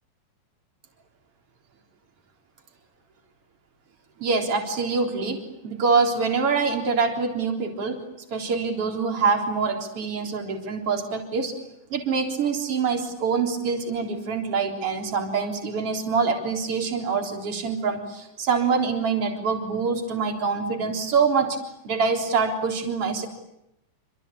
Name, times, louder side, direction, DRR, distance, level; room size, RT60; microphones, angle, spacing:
voice 1, 4.2-8.0 8.3-11.5 11.9-21.6 21.8-23.3, right 5 dB, 40° right, 4 dB, 4.5 m, -25 dB
27.5 x 25.5 x 8.4 m, 0.84 s
omnidirectional pair, 4.1 m